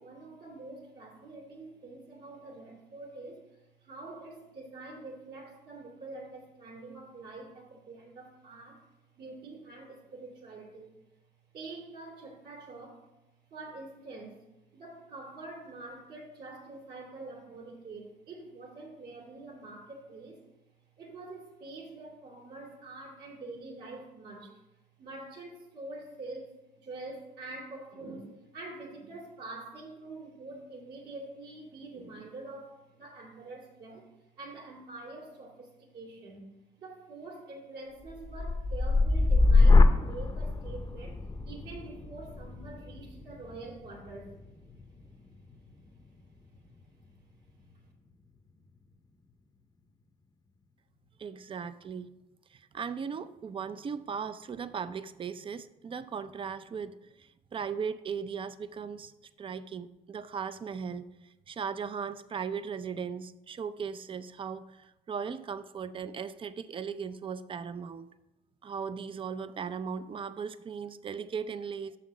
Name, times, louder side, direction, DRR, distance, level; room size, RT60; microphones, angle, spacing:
voice 1, 0.0-11.0 11.5-13.0 13.5-14.4 14.7-20.4 21.0-24.6 25.0-34.1 34.4-36.5 36.8-44.4, right 2 dB, 70° right, -4 dB, 2.8 m, -45 dB
sound 1, 38.1-46.1 46.6-47.0, left 3 dB, 25° left, 0.7 m, -25 dB
voice 2, 51.2-52.1 52.5-59.1 59.4-61.1 61.5-68.1 68.6-72.0, right 6 dB, 35° right, 13 dB, 0.5 m, -37 dB
6.4 x 5.7 x 6.0 m, 0.93 s
cardioid pair, 95°, 16 cm